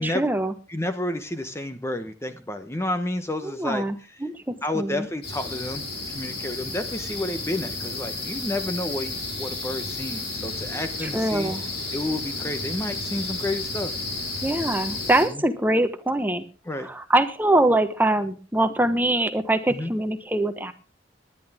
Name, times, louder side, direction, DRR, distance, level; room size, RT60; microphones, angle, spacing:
voice 1, 0.0-0.5 3.4-5.1 11.0-11.6 14.4-16.4 16.7-20.7, right 1 dB, 10° right, 9 dB, 1.1 m, -23 dB
voice 2, 0.7-3.8 4.6-11.5 11.9-13.9 15.3-15.4 16.6-16.9 19.7-19.9, left 1 dB, 15° left, 9 dB, 1.0 m, -30 dB
sound 1, 5.2-15.2, left 2 dB, 70° left, 6.1 m, -32 dB
19.5 x 11.0 x 3.5 m, 0.34 s
head